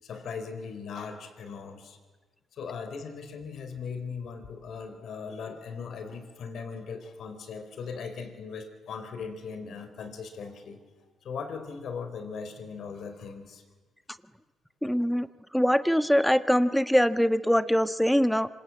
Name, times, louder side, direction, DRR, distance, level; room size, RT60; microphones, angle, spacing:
voice 1, 0.0-2.0 2.5-10.8 11.2-13.6, left 5 dB, 65° left, 8 dB, 4.6 m, -39 dB
voice 2, 14.8-15.3 15.5-18.5, equal, ahead, 12 dB, 1.3 m, -23 dB
26.5 x 26.0 x 8.8 m, 1.3 s
cardioid pair, 90°, 0 cm